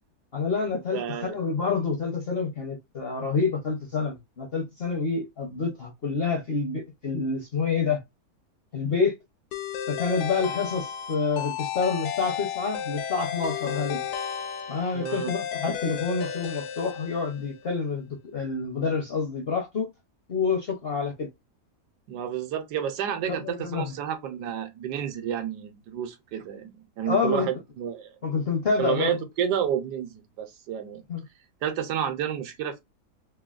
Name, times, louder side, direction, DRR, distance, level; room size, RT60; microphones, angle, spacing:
voice 1, 0.3-8.0 8.7-9.1 9.9-14.0 14.7-19.9 20.3-21.3 23.3-23.9 27.1-27.5 28.2-29.2 31.1-31.2, left 5 dB, 55° left, 0.7 m, -28 dB
voice 2, 0.9-1.4 14.9-15.3 22.1-28.1 28.8-31.0 31.6-32.8, right 9 dB, 80° right, 1.2 m, -30 dB
sound 1, 9.5-17.6, left 9 dB, 80° left, 1.1 m, -33 dB
3.3 x 2.2 x 2.3 m
omnidirectional pair, 1.8 m